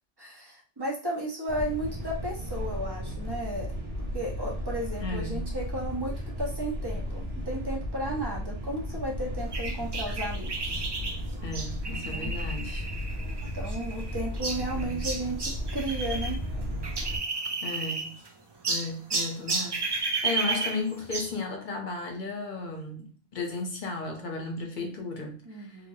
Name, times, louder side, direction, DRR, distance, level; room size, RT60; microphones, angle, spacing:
voice 1, 0.2-3.7 4.1-10.7 12.0-12.3 13.5-16.4 25.4-25.9, right 1 dB, 25° right, 0.9 m, -34 dB
sound 1, 1.5-17.2, equal, 75° right, 1.1 m, -34 dB
voice 2, 5.0-5.4 11.4-12.9 14.5-15.1 17.6-18.2 18.7-25.8, left 3 dB, 55° left, 0.8 m, -35 dB
sound 2, 9.5-16.3 16.6-18.3 18.6-21.4, right 3 dB, 40° right, 0.3 m, -33 dB
2.9 x 2.8 x 2.7 m
omnidirectional pair, 1.0 m